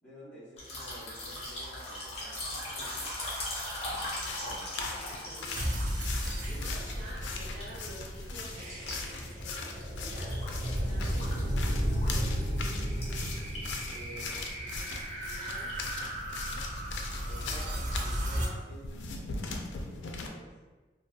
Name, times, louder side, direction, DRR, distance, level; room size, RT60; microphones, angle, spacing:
voice 1, 0.0-3.1 6.5-6.7 13.9-14.4 17.3-19.3 19.6-20.5, equal, 5° left, -11 dB, 1.0 m, -50 dB
sound 1, 0.6-7.1 7.4-8.2 8.4-10.8 11.0-12.4 12.6-12.7 13.0-13.9 14.2-14.4 14.8-15.8, left 1 dB, 35° left, 0.7 m, -39 dB
Counting Bills, 3.9-18.2 18.7-20.3, left 4 dB, 75° left, 0.3 m, -41 dB
voice 2, 4.2-13.2 14.1-15.7, equal, 80° right, -8 dB, 1.2 m, -50 dB
sound 2, 5.6-18.5, equal, 40° right, 0.4 m, -34 dB
2.7 x 2.5 x 2.3 m, 1.2 s
head